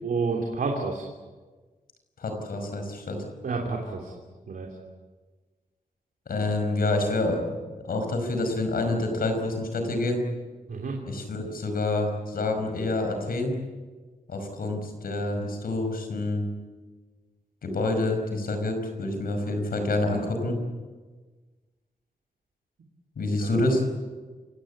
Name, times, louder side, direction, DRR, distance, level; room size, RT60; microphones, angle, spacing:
voice 1, 0.0-1.1 3.4-4.1 4.5-4.7 10.7-11.0 23.2-23.6, right 4 dB, 75° right, 0 dB, 3.2 m, -30 dB
voice 2, 2.2-3.2 6.3-10.2 11.1-13.5 14.3-16.5 17.6-20.6 23.2-23.8, left 2 dB, 90° left, 5 dB, 5.4 m, -27 dB
28.5 x 17.0 x 8.8 m, 1.4 s
wide cardioid pair, 170°, 15 cm